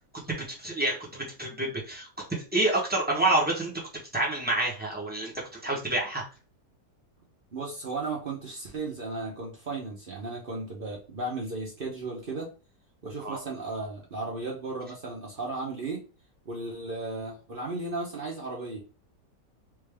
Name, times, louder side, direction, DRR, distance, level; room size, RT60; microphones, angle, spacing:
voice 1, 0.1-2.1 2.5-6.2 13.2-13.4, right 2 dB, 10° right, -3 dB, 0.5 m, -28 dB
voice 2, 7.5-12.5 13.0-16.0 16.5-18.8, right 3 dB, 45° right, -2 dB, 0.7 m, -35 dB
3.5 x 2.7 x 3.3 m, 0.34 s
omnidirectional pair, 1.9 m